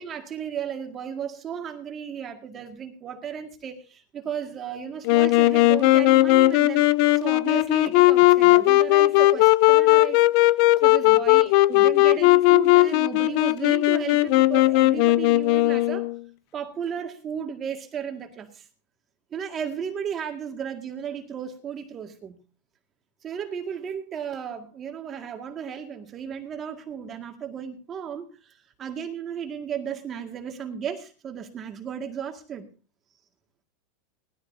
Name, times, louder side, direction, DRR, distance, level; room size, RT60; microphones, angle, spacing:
voice 1, 0.0-6.9 7.1-10.2 10.8-16.1 16.5-18.7 19.3-22.4 23.2-32.7, right 8 dB, 25° right, 5 dB, 1.9 m, -34 dB
Wind instrument woodwind instrument, 5.1-16.2, left 18 dB, 50° left, 0.5 m, -18 dB
19.5 x 13.5 x 2.7 m, 0.34 s
supercardioid pair, 155°, 0 cm